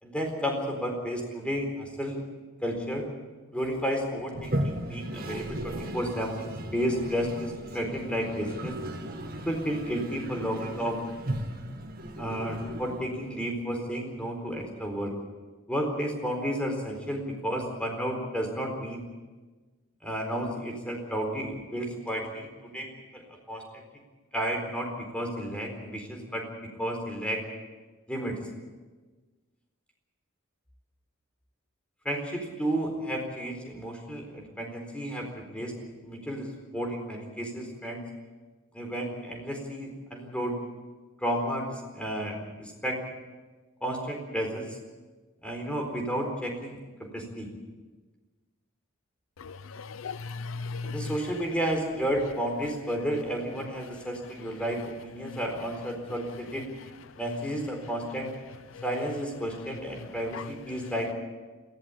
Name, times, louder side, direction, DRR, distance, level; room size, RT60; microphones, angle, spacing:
voice 1, 0.0-2.2 2.6-3.1 3.5-8.8 9.4-11.0 12.2-15.1 15.7-19.0 20.0-23.6 24.3-26.4 26.8-27.4 28.1-28.4 32.0-35.7 36.0-38.0 38.7-40.6 41.2-43.0 43.8-44.8 45.4-47.5 50.8-56.7 57.1-58.3 58.8-61.1, equal, 5° left, 4.2 m, -32 dB
Toilet flush, 4.3-13.4, right 1 dB, 45° right, 2.0 m, -36 dB
voice 2, 49.4-51.1 55.2-55.4 58.7-58.8 60.3-60.5, left 4 dB, 70° left, 0.6 m, -37 dB
22.0 x 16.5 x 8.5 m
head